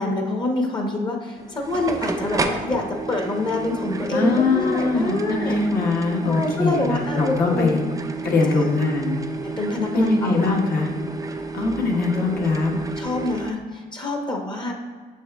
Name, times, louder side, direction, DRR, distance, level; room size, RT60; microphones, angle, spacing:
voice 1, 0.0-5.6 6.3-7.8 8.6-8.7 9.6-10.5 11.9-12.2 12.5-12.6 13.0-14.7, left 2 dB, 25° left, 1 dB, 0.9 m, -26 dB
sound 1, 1.4-13.5, right 4 dB, 20° right, 0.5 m, -31 dB
voice 2, 4.1-7.8 8.2-9.2 9.9-10.9 11.5-12.8, left 3 dB, 60° left, -1 dB, 1.3 m, -22 dB
6.8 x 6.3 x 2.3 m, 1.6 s
cardioid pair, 110°, 17 cm